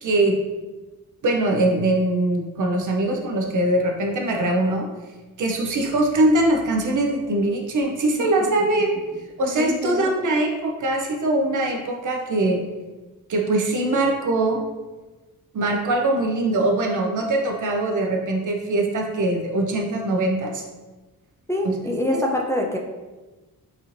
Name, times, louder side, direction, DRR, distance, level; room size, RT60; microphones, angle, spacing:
voice 1, 0.0-0.4 1.2-4.9 5.4-8.9 9.4-12.6 13.3-14.6 15.5-20.6 21.6-21.7, right 2 dB, 55° right, 1 dB, 0.6 m, -22 dB
voice 2, 9.6-10.1 21.5-22.8, left 1 dB, 10° left, -1 dB, 0.3 m, -25 dB
4.1 x 2.5 x 3.0 m, 1.2 s
wide cardioid pair, 120°, 36 cm